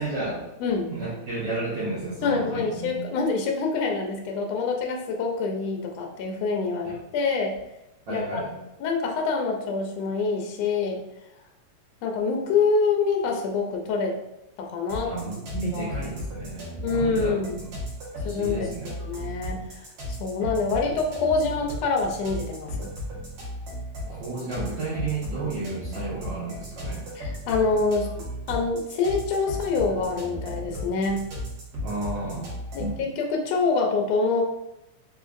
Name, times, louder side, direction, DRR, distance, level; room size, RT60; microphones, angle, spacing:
voice 1, 0.0-3.0 6.8-7.0 8.1-8.5 15.0-17.7 18.2-18.9 24.1-27.0 31.8-32.5 32.8-33.0, right 2 dB, 85° right, -10 dB, 1.0 m, -32 dB
voice 2, 2.2-7.5 8.1-8.4 8.8-11.0 12.0-14.1 14.6-15.1 15.6-15.9 16.8-17.6 18.2-19.6 20.2-22.9 27.2-28.1 28.5-31.2 32.7-34.4, left 4 dB, 85° left, 1 dB, 1.4 m, -26 dB
sound 1, 14.9-33.0, left 1 dB, 60° right, 1.5 m, -35 dB
4.7 x 2.5 x 2.5 m, 0.90 s
omnidirectional pair, 3.5 m